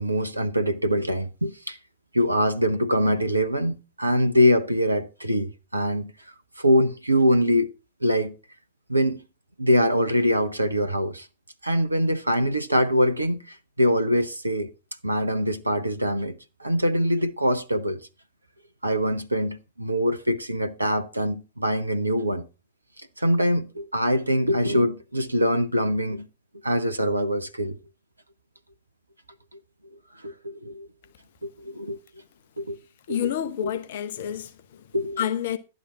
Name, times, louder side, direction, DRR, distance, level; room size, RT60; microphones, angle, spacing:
voice 1, 0.0-1.8 2.1-6.1 6.6-7.7 8.0-8.3 8.9-9.2 9.6-11.3 11.6-14.7 15.0-18.1 18.8-22.5 23.2-26.3 26.6-27.8 30.2-30.9 31.4-32.0 32.6-32.8 33.1-33.3 33.6-33.7 34.9-35.2, equal, 85° right, 0.8 m, -23 dB
voice 2, 33.1-34.8 35.2-35.6, left 10 dB, 50° left, 1.0 m, -29 dB
12.0 x 9.9 x 3.9 m
figure-of-eight pair, 100°, 0 cm